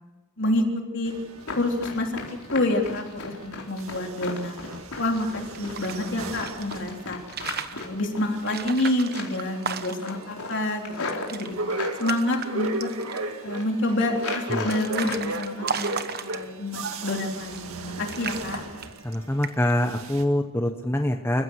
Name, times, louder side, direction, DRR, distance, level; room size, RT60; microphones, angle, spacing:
sound 1, 1.0-3.4 3.7-19.4 19.8-20.2, right 2 dB, 75° right, 1.9 m, -37 dB
Run, 1.4-8.8 9.1-9.5 9.8-12.0 12.6-13.1 13.4-13.7 14.1-15.3 15.6-16.4 16.7-16.9 17.3-17.7 18.0-18.1 18.6-18.7 19.1-19.2, left 3 dB, 85° left, 4.2 m, -37 dB
voice 1, 1.6-4.6 5.0-7.2 7.7-11.6 12.0-12.9 13.4-15.9 16.1-18.6, left 1 dB, 55° left, 2 dB, 3.6 m, -28 dB
sound 2, 5.4-6.8 7.2-7.9 8.4-10.2 10.6-10.7 11.0-11.5 11.8-12.5 12.8-13.3 14.0-16.7 17.4-17.8 18.1-19.2 19.4-19.8, right 6 dB, 45° right, 1.2 m, -35 dB
voice 2, 19.0-21.4, left 1 dB, 10° left, 5 dB, 1.0 m, -25 dB
29.0 x 15.5 x 6.4 m, 1.1 s
head